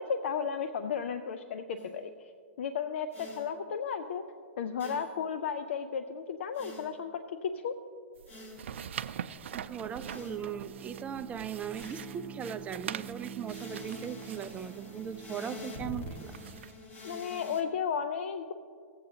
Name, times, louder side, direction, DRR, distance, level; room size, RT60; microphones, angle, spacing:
voice 1, 0.0-2.1 2.6-4.2 4.6-7.7 17.0-18.5, left 6 dB, 70° left, 9 dB, 0.5 m, -34 dB
sound 1, 1.8-2.0 3.1-3.5 4.8-5.2 6.5-7.0 8.3-8.7 10.0-10.5 11.7-12.2 13.4-17.6, left 1 dB, 30° left, 1.8 m, -46 dB
sound 2, 8.2-16.7, right 9 dB, 75° right, 0.5 m, -44 dB
Bowed string instrument, 9.0-16.7, right 5 dB, ahead, 0.7 m, -48 dB
voice 2, 9.5-16.3, right 8 dB, 20° right, 11 dB, 0.4 m, -39 dB
18.5 x 7.8 x 2.8 m, 2.2 s
hypercardioid pair, 120°, 7 cm